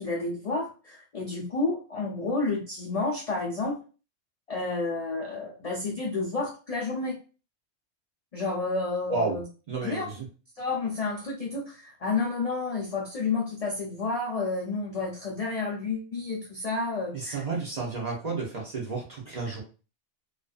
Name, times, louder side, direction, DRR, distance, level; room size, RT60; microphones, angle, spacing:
voice 1, 0.0-3.8 4.5-7.2 8.3-9.4 9.8-10.0 10.6-17.4, left 3 dB, 55° left, -3 dB, 0.4 m, -30 dB
voice 2, 9.7-10.3 17.1-19.6, right 3 dB, 40° right, -3 dB, 0.7 m, -31 dB
2.5 x 2.3 x 2.3 m, 0.34 s
omnidirectional pair, 1.3 m